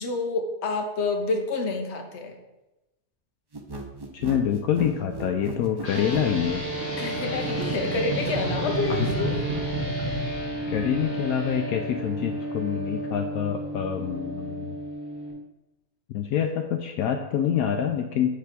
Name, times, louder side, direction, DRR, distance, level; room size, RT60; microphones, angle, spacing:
voice 1, 0.0-2.3 7.0-9.3, left 3 dB, 50° left, 3 dB, 1.2 m, -28 dB
sound 1, 3.5-6.3, right 3 dB, 40° right, 0.3 m, -36 dB
voice 2, 4.1-6.6 9.0-9.1 10.7-14.8 16.1-18.3, left 9 dB, 75° left, 5 dB, 1.0 m, -26 dB
sound 2, 5.4-11.3, right 2 dB, 55° right, 1.5 m, -32 dB
sound 3, 5.8-15.3, right 1 dB, 25° left, 2.3 m, -33 dB
8.3 x 3.4 x 6.0 m, 1.0 s
omnidirectional pair, 1.6 m